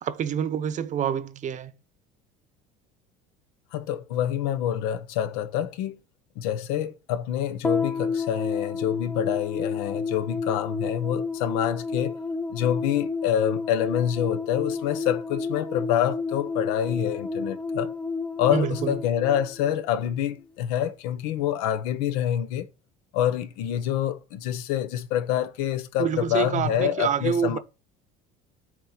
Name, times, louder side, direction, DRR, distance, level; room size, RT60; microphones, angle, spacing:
voice 1, 0.0-1.8 18.5-19.0 26.0-27.6, right 8 dB, 40° right, 0.8 m, -27 dB
voice 2, 3.7-5.9 6.4-12.1 12.5-17.9 18.4-22.7 23.1-27.6, left 10 dB, 90° left, 1.1 m, -26 dB
sound 1, 7.6-20.1, left 4 dB, 5° left, 0.5 m, -31 dB
7.4 x 4.3 x 5.9 m
cardioid pair, 120°, 19 cm